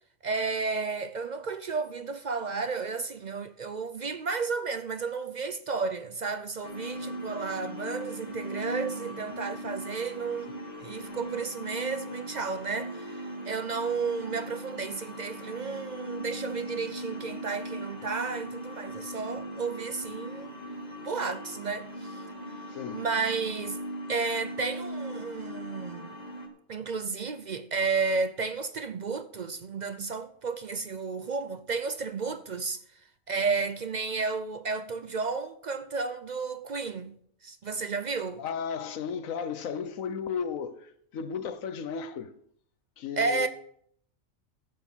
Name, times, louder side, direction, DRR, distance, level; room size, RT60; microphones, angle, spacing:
voice 1, 0.2-10.5 10.8-20.5 21.0-22.3 22.9-23.8 24.1-26.1 26.7-32.8 33.3-37.1 37.4-38.4 43.2-43.5, right 4 dB, 55° right, 0.5 m, -32 dB
sound 1, 6.6-26.5, equal, 30° left, 1.7 m, -39 dB
voice 2, 22.7-23.0 25.5-25.8 38.4-42.3 43.0-43.5, left 6 dB, 85° left, 1.3 m, -34 dB
14.0 x 6.6 x 6.1 m
omnidirectional pair, 1.4 m